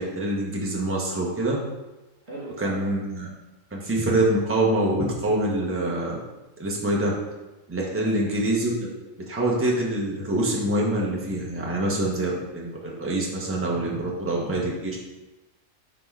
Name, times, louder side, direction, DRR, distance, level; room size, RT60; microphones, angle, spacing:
voice 1, 0.0-1.6 2.6-3.3 3.7-6.2 6.6-7.1 7.7-8.7 9.3-15.0, right 1 dB, 10° right, -3 dB, 1.0 m, -25 dB
voice 2, 2.2-2.9 7.9-8.3, right 2 dB, 55° right, -6 dB, 2.4 m, -39 dB
6.1 x 3.8 x 4.6 m, 1.1 s
omnidirectional pair, 1.4 m